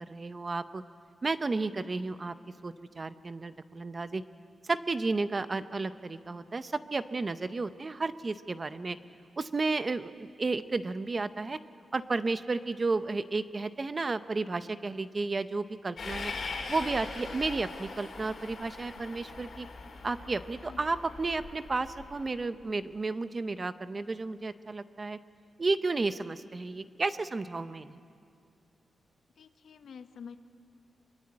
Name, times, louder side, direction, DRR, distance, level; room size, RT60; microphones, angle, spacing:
voice 1, 0.1-0.8 1.2-2.3 2.6-4.2 4.6-9.0 9.4-11.6 11.9-16.3 16.7-19.7 20.0-25.2 25.6-28.0, right 3 dB, 30° right, 12 dB, 0.6 m, -32 dB
Train, 16.0-22.3, left 4 dB, 55° left, 3.3 m, -41 dB
voice 2, 29.4-30.4, left 6 dB, 70° left, 9 dB, 1.1 m, -47 dB
24.5 x 22.0 x 8.7 m, 2.3 s
wide cardioid pair, 165°, 0 cm